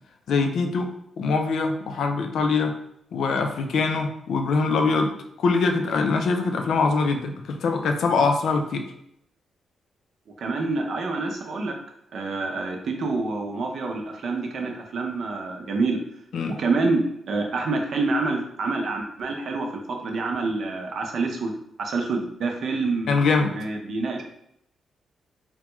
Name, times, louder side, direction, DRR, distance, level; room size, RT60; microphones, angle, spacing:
voice 1, 0.3-0.9 1.2-2.7 3.1-5.1 5.4-8.8 16.3-16.6 23.1-23.5, left 4 dB, 70° left, 4 dB, 0.4 m, -23 dB
voice 2, 10.4-11.8 12.1-16.0 16.5-24.2, right 3 dB, 60° right, 2 dB, 0.6 m, -27 dB
3.5 x 2.2 x 3.0 m, 0.76 s
cardioid pair, 135°, 0 cm